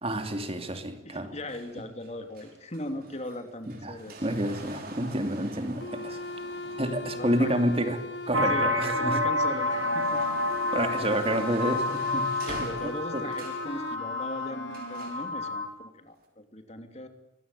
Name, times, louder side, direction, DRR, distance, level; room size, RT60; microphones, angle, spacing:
voice 1, 0.0-1.3 3.8-6.2 6.8-8.0 8.3-9.2 10.7-12.3 12.6-12.7 13.1-13.2, right 1 dB, 30° right, 7 dB, 2.8 m, -29 dB
voice 2, 1.0-4.1 6.1-6.2 7.1-7.5 8.5-10.2 10.6-10.7 11.1-11.2 12.3-17.1, left 1 dB, 35° left, 7 dB, 3.0 m, -39 dB
sound 1, 1.5-8.7 9.2-13.7 14.7-15.3 16.2-16.3, right 2 dB, 50° right, 6.1 m, -45 dB
sound 2, 5.8-15.1, left 2 dB, 65° left, 1.8 m, -39 dB
sound 3, 8.3-15.7, left 2 dB, 75° right, 2.7 m, -29 dB
24.5 x 21.5 x 9.9 m, 0.82 s
head